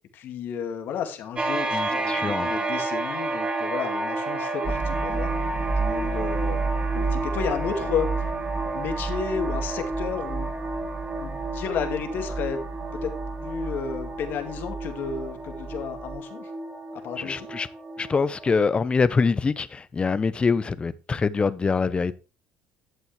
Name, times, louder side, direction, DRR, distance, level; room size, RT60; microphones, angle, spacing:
voice 1, 0.1-5.3 5.8-8.3 8.7-10.5 11.2-12.6 12.9-13.1 13.4-16.5 16.9-17.5, left 7 dB, 60° left, 2.1 m, -32 dB
sound 1, 1.4-18.6, right 2 dB, 25° right, 2.3 m, -31 dB
voice 2, 1.7-2.5 17.2-17.7 18.0-22.1, left 4 dB, 25° left, 0.8 m, -24 dB
sound 2, 4.6-16.2, right 4 dB, 45° right, 3.3 m, -32 dB
11.5 x 8.2 x 3.3 m
supercardioid pair, 75°, 4 cm